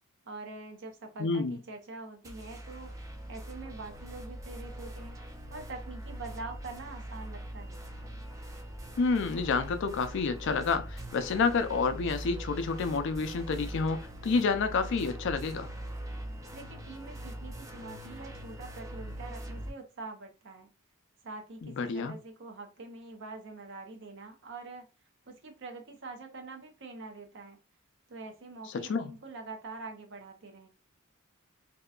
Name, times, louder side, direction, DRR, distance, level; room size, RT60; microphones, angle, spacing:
voice 1, 0.2-7.8 16.5-20.7 21.2-24.9 25.3-27.6 28.1-30.7, right 3 dB, 60° right, 0.6 m, -45 dB
voice 2, 1.2-1.6 9.0-14.0 14.2-15.7 21.6-22.1 28.7-29.1, left 4 dB, 60° left, 0.4 m, -29 dB
sound 1, 2.2-19.7, right 1 dB, 15° right, 0.4 m, -42 dB
2.7 x 2.2 x 2.3 m
head